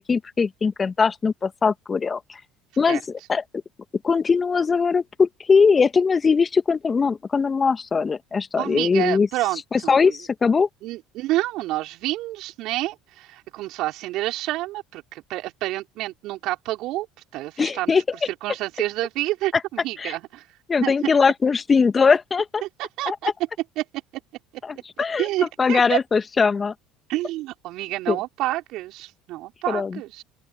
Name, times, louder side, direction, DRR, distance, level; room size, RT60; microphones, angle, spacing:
voice 1, 0.0-2.4 2.8-3.0 3.3-3.4 4.0-9.3 9.7-10.7 17.6-18.0 20.0-20.1 20.7-22.6 23.1-23.2 24.6-26.7 28.1-28.2 29.7-30.0, left 5 dB, 30° left, 2.1 m, -21 dB
voice 2, 8.6-10.1 10.8-17.1 17.3-17.9 18.4-20.4 20.8-20.9 22.6-23.3 23.8-23.9 25.2-26.0 27.1-30.2, right 17 dB, 60° right, 4.8 m, -28 dB
open air
hypercardioid pair, 65°, 0 cm